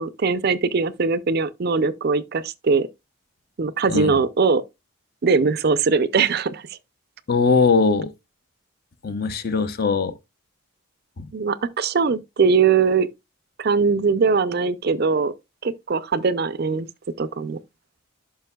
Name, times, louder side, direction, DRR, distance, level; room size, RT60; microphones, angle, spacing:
voice 1, 0.0-2.9 3.6-4.6 5.2-6.8 11.3-13.1 13.6-15.3 15.6-16.9 17.2-17.6, right 5 dB, 45° right, 0.5 m, -21 dB
voice 2, 7.3-8.1 9.0-10.1 11.2-11.3, left 4 dB, 45° left, 0.6 m, -20 dB
11.0 x 5.7 x 2.2 m
head